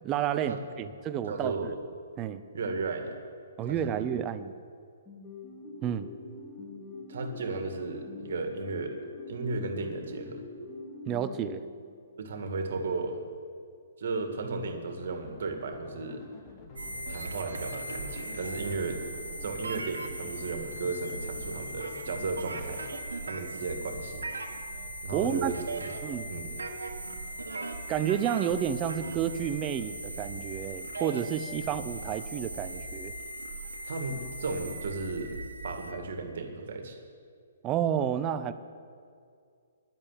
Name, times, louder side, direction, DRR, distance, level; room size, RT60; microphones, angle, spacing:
voice 1, 0.0-1.7 2.2-2.4 3.6-4.5 5.8-6.1 11.1-11.6 25.1-25.5 26.0-26.3 27.9-33.1 37.6-38.5, right 9 dB, 25° right, 12 dB, 0.7 m, -30 dB
voice 2, 1.3-1.8 2.5-3.2 3.7-4.1 7.1-9.0 9.3-10.4 12.2-13.2 14.0-16.2 17.1-19.0 19.4-22.8 23.2-24.3 25.0-25.9 26.3-26.5 33.8-35.3 35.6-37.0, right 3 dB, 65° right, 5 dB, 2.0 m, -35 dB
sound 1, 5.1-12.2, left 3 dB, 10° left, 1.9 m, -44 dB
sound 2, 14.9-23.0, left 4 dB, 30° left, 1.6 m, -49 dB
sound 3, 16.8-35.9, right 2 dB, 90° right, 1.5 m, -39 dB
10.5 x 8.7 x 9.7 m, 2.3 s
hypercardioid pair, 135°, 0 cm